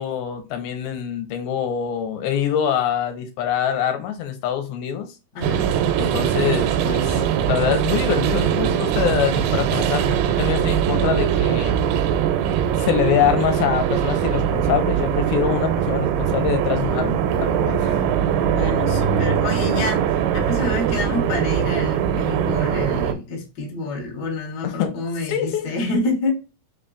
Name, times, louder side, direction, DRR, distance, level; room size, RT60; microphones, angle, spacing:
voice 1, 0.0-5.1 6.0-7.2 7.5-11.7 12.8-17.9 24.6-24.9 25.3-25.7, left 9 dB, 80° left, 2.5 m, -24 dB
voice 2, 5.3-5.7 17.7-18.1 18.4-26.6, left 2 dB, 65° left, 1.0 m, -28 dB
sound 1, 5.4-23.1, right 9 dB, 85° right, 2.5 m, -21 dB
5.7 x 3.9 x 2.4 m
omnidirectional pair, 4.6 m